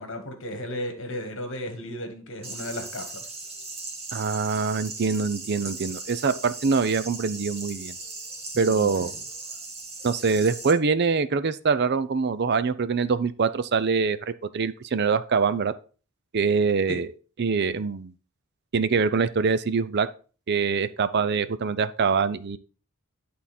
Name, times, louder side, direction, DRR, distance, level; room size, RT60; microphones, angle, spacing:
voice 1, 0.0-3.2 8.5-9.1 16.9-17.0, left 1 dB, 55° left, 6 dB, 1.5 m, -35 dB
sound 1, 2.4-10.7, right 3 dB, 25° right, 1.5 m, -38 dB
voice 2, 4.1-8.0 8.6-9.1 10.0-15.7 16.3-17.1 17.4-18.1 18.7-20.1 20.5-22.6, right 5 dB, 45° right, 14 dB, 0.5 m, -24 dB
10.5 x 3.8 x 4.2 m, 0.37 s
head